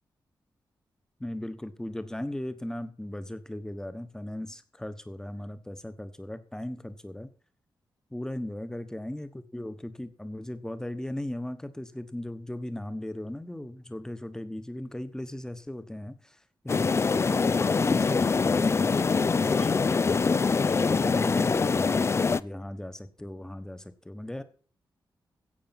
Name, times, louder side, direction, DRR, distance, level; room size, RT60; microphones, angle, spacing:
voice 1, 1.2-7.3 8.1-20.1 20.6-24.4, left 1 dB, 5° left, 11 dB, 1.2 m, -37 dB
sound 1, 16.7-22.4, left 4 dB, 35° left, 0.5 m, -24 dB
16.5 x 6.5 x 5.9 m, 0.41 s
wide cardioid pair, 135°, 8 cm